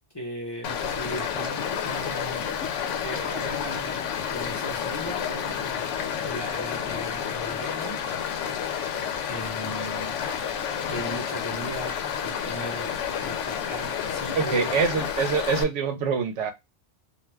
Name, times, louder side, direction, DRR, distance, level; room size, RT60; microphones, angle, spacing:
voice 1, 0.1-2.5 3.0-8.0 9.3-10.2 10.9-14.8, equal, 25° left, 0.8 m, -37 dB
Stream, 0.6-15.6, left 8 dB, 90° left, 0.9 m, -30 dB
voice 2, 14.3-16.5, right 5 dB, 80° right, 1.0 m, -25 dB
2.5 x 2.3 x 3.2 m
omnidirectional pair, 1.2 m